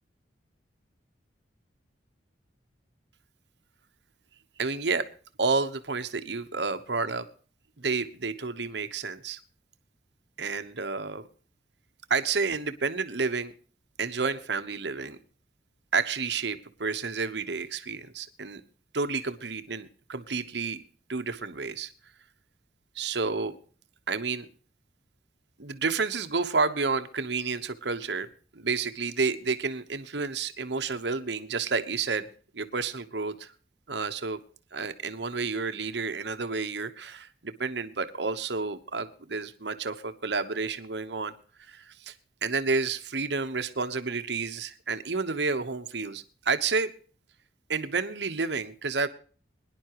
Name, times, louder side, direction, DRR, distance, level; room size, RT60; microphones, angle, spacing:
voice 1, 4.6-5.0 5.4-7.3 7.8-9.4 10.4-11.2 12.1-13.5 14.0-15.2 15.9-18.6 18.9-20.8 21.1-21.9 22.9-23.6 24.1-24.5 25.6-28.3 28.5-32.3 32.5-33.5 33.9-34.4 34.7-41.3 41.6-42.1 42.4-46.9 47.7-49.1, right 4 dB, 70° right, 9 dB, 1.1 m, -30 dB
23.0 x 11.0 x 3.0 m, 0.41 s
head